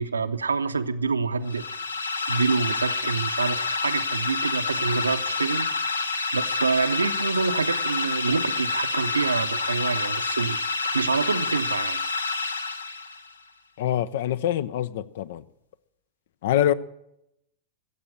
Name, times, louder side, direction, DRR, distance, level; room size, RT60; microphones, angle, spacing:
voice 1, 0.0-1.6 2.3-5.7 6.3-10.6 10.9-12.0, right 4 dB, 75° right, 0.6 m, -26 dB
sound 1, 1.5-13.3, left 4 dB, 70° left, 0.9 m, -28 dB
voice 2, 13.8-15.4 16.4-16.7, left 11 dB, 55° left, 0.5 m, -24 dB
15.0 x 7.5 x 8.9 m
figure-of-eight pair, 90°, 0 cm